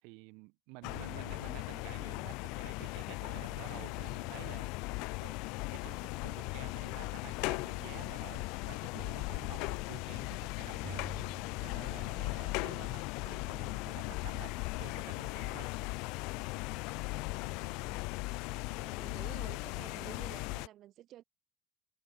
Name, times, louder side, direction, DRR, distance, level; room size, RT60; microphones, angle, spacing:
voice 1, 0.0-5.4 5.7-11.0 11.6-15.7, right 31 dB, 65° right, 3.9 m, -51 dB
sound 1, 0.8-20.7, left 27 dB, 60° left, 0.7 m, -38 dB
sound 2, 10.8-12.6, right 5 dB, 15° right, 3.7 m, -49 dB
voice 2, 17.3-18.0 18.7-21.2, right 13 dB, 40° right, 2.3 m, -52 dB
cardioid pair, 165°, 0 cm